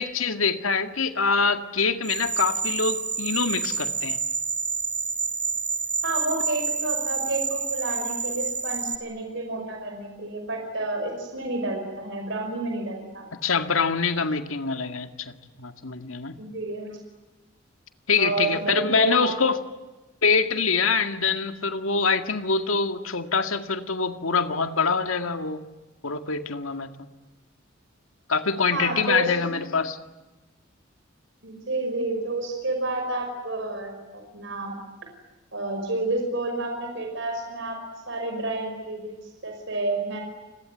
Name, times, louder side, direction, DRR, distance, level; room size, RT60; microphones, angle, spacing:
voice 1, 0.0-4.2 13.3-15.3 15.6-16.4 18.1-19.6 20.2-25.6 26.0-26.9 28.3-30.0, left 5 dB, 90° left, 8 dB, 2.1 m, -25 dB
sound 1, 2.0-9.0, right 5 dB, 10° right, 2.3 m, -28 dB
voice 2, 6.0-13.3 16.4-17.0 18.2-19.3 28.7-29.6 31.4-34.7 35.5-37.8 38.1-40.2, right 2 dB, 65° right, 3 dB, 5.5 m, -30 dB
29.0 x 22.0 x 9.2 m, 1.1 s
head